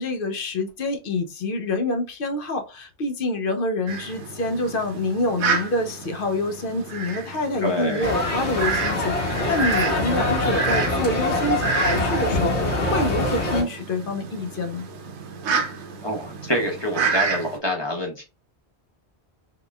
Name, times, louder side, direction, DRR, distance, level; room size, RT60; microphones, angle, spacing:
voice 1, 0.0-14.8, left 2 dB, 60° left, 0.7 m, -27 dB
Fowl, 3.9-17.6, right 4 dB, 85° right, 0.9 m, -30 dB
voice 2, 7.6-8.0 16.0-18.2, equal, 25° left, 0.8 m, -26 dB
sound 1, 8.0-13.6, left 2 dB, 85° left, 1.4 m, -24 dB
3.7 x 2.9 x 2.3 m
omnidirectional pair, 1.1 m